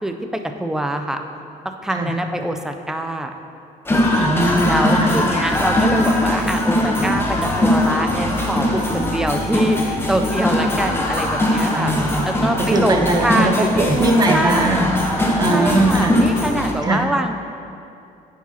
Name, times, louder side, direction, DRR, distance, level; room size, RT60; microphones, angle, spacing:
voice 1, 0.0-1.2 1.8-3.3 4.7-11.9 12.2-14.9 15.5-17.4, right 1 dB, 5° right, 5 dB, 0.4 m, -24 dB
sound 1, 3.9-16.7, left 1 dB, 15° left, 0.8 m, -20 dB
voice 2, 4.2-5.1 11.7-16.2 16.8-17.0, right 2 dB, 25° right, 3 dB, 0.7 m, -20 dB
9.7 x 4.8 x 2.8 m, 2.5 s
cardioid pair, 110°, 17 cm